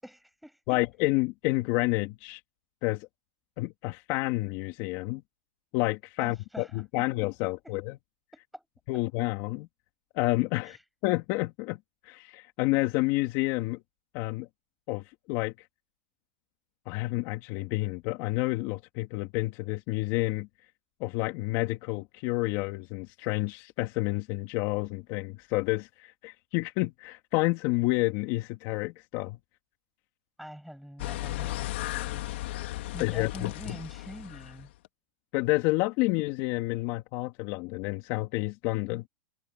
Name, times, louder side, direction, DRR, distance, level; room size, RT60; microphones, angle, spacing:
voice 1, 0.0-0.8 6.2-7.1 7.6-7.8 8.3-8.7 10.6-10.8 30.4-32.5 32.9-34.7, equal, ahead, 7.9 m, -45 dB
voice 2, 0.7-2.4 2.8-3.1 3.6-5.2 5.7-8.0 8.9-9.7 10.1-10.8 11.0-11.8 12.0-13.8 14.1-14.5 14.9-15.7 16.9-20.5 21.0-29.4 33.0-33.8 35.3-39.1, left 21 dB, 45° left, 2.6 m, -29 dB
sound 1, 31.0-34.9, left 16 dB, 65° left, 2.8 m, -35 dB
supercardioid pair, 145°, 7 cm